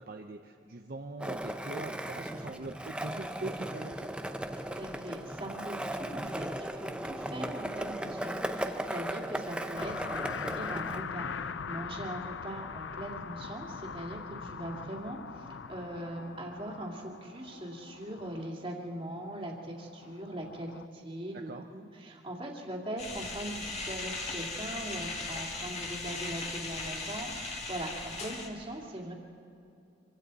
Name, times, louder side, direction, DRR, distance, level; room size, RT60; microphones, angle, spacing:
voice 1, 0.0-4.1 14.8-14.9 21.5-21.6, right 2 dB, 50° right, 4 dB, 0.7 m, -42 dB
Skateboard, 1.2-11.0, right 1 dB, 5° right, 0.7 m, -37 dB
voice 2, 4.6-29.1, right 1 dB, 30° right, -1 dB, 2.5 m, -41 dB
sound 1, 9.8-20.9, left 6 dB, 85° left, 0.6 m, -42 dB
sound 2, 23.0-28.5, left 3 dB, 35° left, 2.2 m, -38 dB
26.0 x 24.5 x 4.1 m, 2.6 s
head